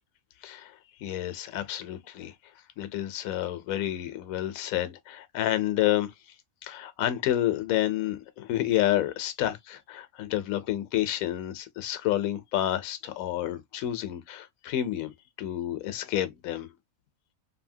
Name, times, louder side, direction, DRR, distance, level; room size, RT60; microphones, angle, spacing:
voice 1, 1.0-2.3 2.8-6.1 6.6-15.1 15.4-16.7, left 13 dB, 70° left, 1.0 m, -29 dB
2.8 x 2.7 x 2.6 m
omnidirectional pair, 1.6 m